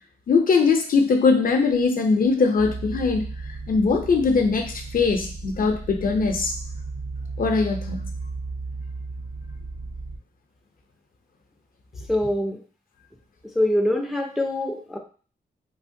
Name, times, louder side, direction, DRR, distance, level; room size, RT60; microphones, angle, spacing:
voice 1, 0.3-3.3 3.7-6.5 7.4-8.1, left 4 dB, 55° left, 4 dB, 0.5 m, -21 dB
sound 1, 2.6-10.2, right 3 dB, 75° right, 0.6 m, -34 dB
voice 2, 12.1-12.6 13.6-15.0, left 1 dB, ahead, 2 dB, 0.3 m, -24 dB
3.3 x 2.1 x 2.6 m, 0.41 s
wide cardioid pair, 115°, 18 cm